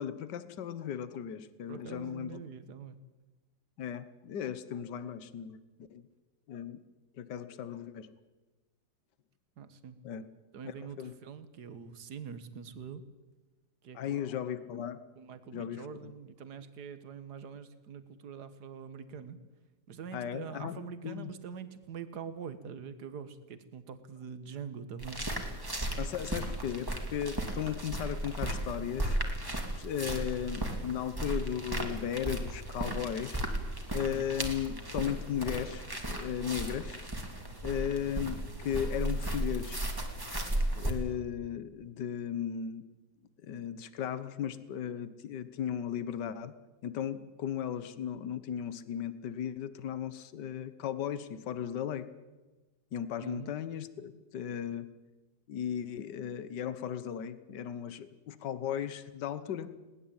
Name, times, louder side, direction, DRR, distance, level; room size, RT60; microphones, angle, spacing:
voice 1, 0.0-2.4 3.8-5.6 5.9-6.0 6.5-6.8 7.1-8.1 10.0-10.2 10.6-11.1 13.9-15.0 15.5-15.9 20.1-21.3 26.0-29.2 29.7-33.4 33.9-37.0 37.6-39.8 40.7-42.8 43.4-46.5 46.8-52.1 52.9-54.9 55.5-59.7, left 9 dB, 75° left, 14 dB, 1.7 m, -36 dB
voice 2, 1.7-3.0 9.6-10.0 10.5-13.1 13.8-14.2 15.2-19.4 19.9-25.2 34.0-34.3 53.2-53.5, right 7 dB, 65° right, 12 dB, 1.9 m, -44 dB
sound 1, 25.0-40.9, right 1 dB, 10° right, 2.7 m, -35 dB
21.0 x 19.0 x 8.8 m, 1.2 s
omnidirectional pair, 1.9 m